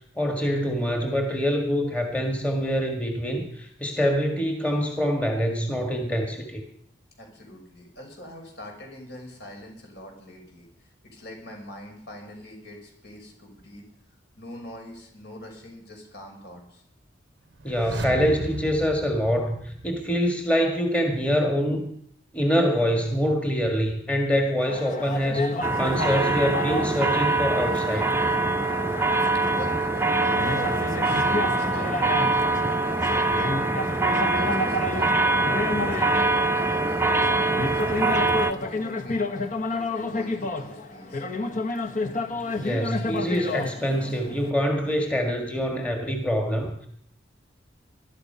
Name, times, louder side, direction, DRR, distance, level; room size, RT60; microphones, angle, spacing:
voice 1, 0.2-6.6 17.6-21.9 22.3-25.5 25.8-28.1 42.6-46.9, equal, 5° left, 3 dB, 1.7 m, -25 dB
voice 2, 7.2-13.8 14.4-16.8 29.1-33.8 34.3-35.2 35.9-41.3, left 1 dB, 60° left, 1 dB, 5.8 m, -43 dB
sound 1, 17.5-20.5 20.7-20.8, right 2 dB, 65° right, 0.8 m, -37 dB
sound 2, 24.7-44.5, left 2 dB, 45° left, 1.5 m, -31 dB
sound 3, 25.6-38.5, right 2 dB, 10° right, 0.8 m, -24 dB
20.5 x 12.0 x 5.6 m, 0.68 s
head